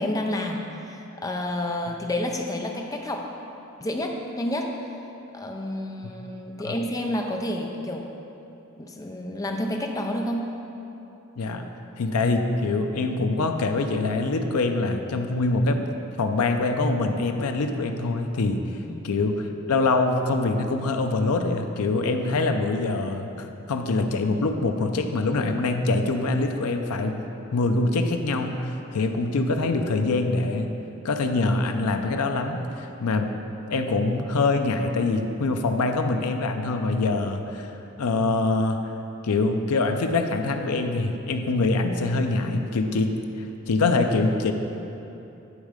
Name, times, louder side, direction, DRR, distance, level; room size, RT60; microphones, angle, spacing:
voice 1, 0.0-3.3 3.8-4.8 5.3-8.1 8.8-10.5 18.9-19.1, left 1 dB, 15° left, 2 dB, 0.4 m, -29 dB
voice 2, 12.0-15.9 16.2-18.6 19.0-27.2 27.5-30.7 31.0-33.3 33.7-37.7 38.0-38.9 39.2-44.5, left 3 dB, 85° left, 6 dB, 0.5 m, -24 dB
9.8 x 3.6 x 4.9 m, 2.9 s
head